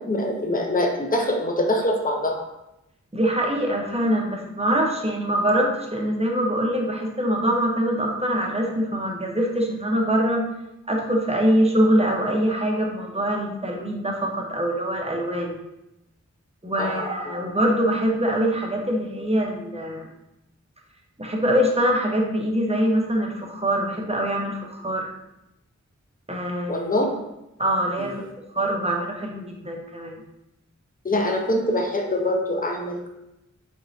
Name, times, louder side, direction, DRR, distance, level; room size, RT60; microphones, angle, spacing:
voice 1, 0.1-2.4 16.8-17.3 26.7-27.1 28.0-28.2 31.0-33.1, left 1 dB, 30° left, 2 dB, 0.6 m, -24 dB
voice 2, 3.1-10.4 10.9-15.5 16.6-20.1 21.2-25.1 26.3-26.9 27.6-28.1 28.5-30.2, equal, 20° right, 0 dB, 0.7 m, -23 dB
4.5 x 3.0 x 2.6 m, 0.90 s
wide cardioid pair, 45°, 30 cm